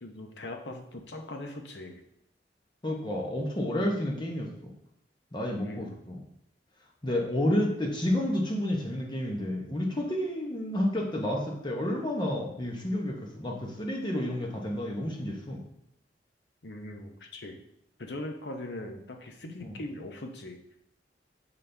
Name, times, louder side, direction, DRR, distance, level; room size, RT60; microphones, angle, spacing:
voice 1, 0.0-2.0 5.6-6.0 16.6-17.6 18.0-20.6, left 1 dB, 70° left, 4 dB, 0.8 m, -40 dB
voice 2, 2.8-4.7 5.3-6.2 7.0-15.6 19.6-19.8, left 1 dB, 25° left, 0 dB, 0.9 m, -30 dB
7.3 x 4.0 x 3.4 m, 0.77 s
head